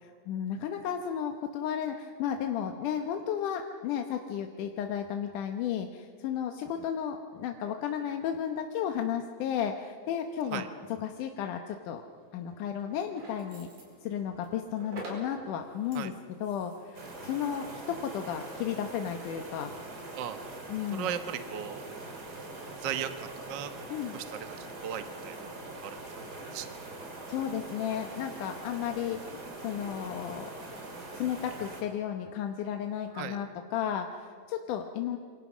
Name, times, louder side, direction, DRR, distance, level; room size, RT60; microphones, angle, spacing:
voice 1, 0.0-10.6 10.9-12.0 12.3-13.7 14.0-16.1 16.4-19.7 20.7-21.1 23.9-24.2 27.3-30.5 31.1-35.2, left 9 dB, 70° left, 5 dB, 2.4 m, -33 dB
sound 1, 11.9-31.1, right 2 dB, 60° right, 6.3 m, -53 dB
sound 2, 16.9-31.8, right 2 dB, 30° right, 3.3 m, -43 dB
voice 2, 20.9-21.8 22.8-25.4 25.8-26.7 33.1-33.4, right 9 dB, 80° right, 8 dB, 1.0 m, -37 dB
27.5 x 25.0 x 6.2 m, 2.1 s
omnidirectional pair, 4.0 m